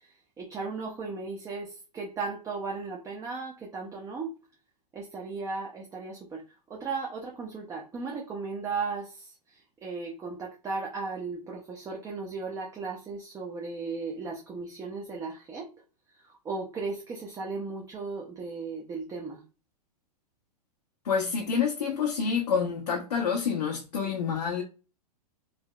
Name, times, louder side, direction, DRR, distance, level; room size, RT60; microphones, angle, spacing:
voice 1, 0.0-4.3 4.9-15.7 16.1-19.4, right 4 dB, 15° right, 0.6 m, -36 dB
voice 2, 21.0-24.6, left 6 dB, 75° left, 0.8 m, -28 dB
3.2 x 2.7 x 2.2 m
hypercardioid pair, 105°, 21 cm